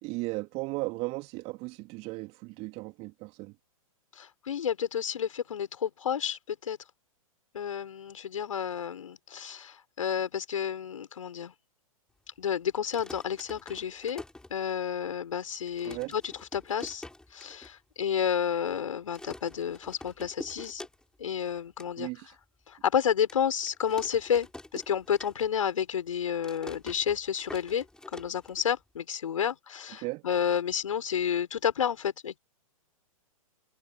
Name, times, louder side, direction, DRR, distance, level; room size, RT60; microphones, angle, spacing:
voice 1, 0.0-3.5 15.8-16.1 22.0-22.4 30.0-30.2, right 24 dB, 35° right, 2.5 m, -36 dB
voice 2, 4.1-6.8 7.5-11.5 12.4-14.2 14.5-17.0 17.3-20.8 21.2-22.1 22.7-24.5 24.7-27.8 28.1-32.4, left 8 dB, 65° left, 6.1 m, -30 dB
Crawling on a Wooden Floor, 12.8-15.1 15.4-15.5 15.7-17.7 18.1-18.2 18.4-18.8 19.1-21.3 21.6-21.9 22.4-22.5 23.3-25.7 26.0-29.0, left 2 dB, 5° left, 6.7 m, -46 dB
figure-of-eight pair, 110°, 18 cm